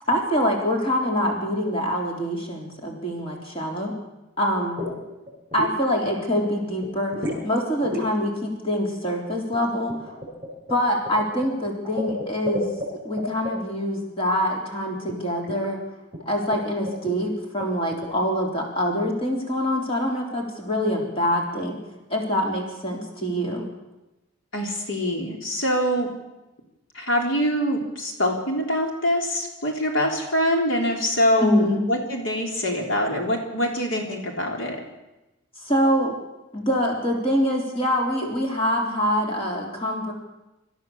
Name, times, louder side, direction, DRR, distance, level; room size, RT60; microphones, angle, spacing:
voice 1, 0.1-3.9 4.4-4.8 5.5-7.1 7.4-9.9 10.7-12.7 13.0-15.8 16.3-21.8 22.1-23.6 31.4-31.8 35.6-36.1 36.5-40.1, equal, 25° left, 0 dB, 3.6 m, -25 dB
sound 1, 4.6-5.0 5.3-5.8 6.1-6.5 6.8-7.5 7.8-8.1 9.5-12.9 13.2-13.5 15.1-15.2 15.4-15.7 16.1-16.2 16.5-16.6 16.9-17.1 17.6-18.1, left 1 dB, 5° right, 7.3 m, -32 dB
voice 2, 24.5-26.1 26.9-34.8, equal, 65° left, 1 dB, 3.5 m, -24 dB
25.5 x 14.0 x 7.2 m, 1.0 s
head